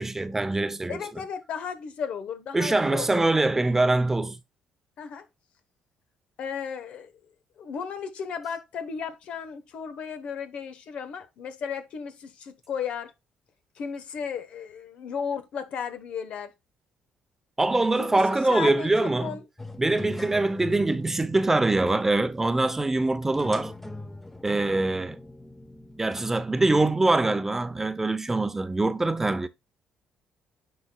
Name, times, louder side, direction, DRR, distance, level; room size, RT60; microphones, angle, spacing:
voice 1, 0.0-1.0 2.5-4.4 17.6-19.4 19.8-23.7 24.4-25.2 26.0-29.5, right 2 dB, 15° right, 0.7 m, -24 dB
voice 2, 0.9-3.3 5.0-5.3 6.4-7.1 7.6-13.1 13.8-16.5 18.0-19.4 20.3-20.5, left 7 dB, 65° left, 1.2 m, -35 dB
sound 1, 19.6-27.2, left 2 dB, 10° left, 1.0 m, -42 dB
9.9 x 4.2 x 2.3 m
supercardioid pair, 75°, 2 cm